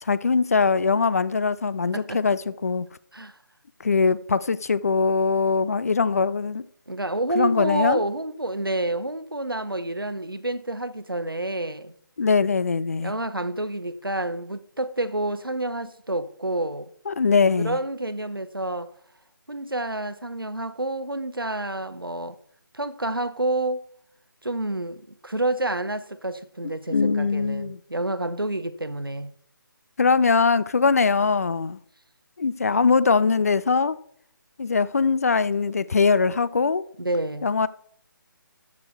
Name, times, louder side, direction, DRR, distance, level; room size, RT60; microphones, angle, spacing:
voice 1, 0.0-2.9 3.8-6.6 7.3-8.0 12.2-13.1 17.1-17.8 26.6-27.8 30.0-31.8 32.4-34.0 34.6-36.8 37.4-37.7, left 4 dB, 45° left, 0.4 m, -22 dB
voice 2, 6.9-11.9 13.0-16.9 17.6-18.9 19.5-22.4 22.7-23.8 24.4-29.3 31.1-31.3 37.0-37.5, right 2 dB, 85° right, 0.9 m, -29 dB
13.5 x 6.1 x 4.6 m
figure-of-eight pair, 150°, 11 cm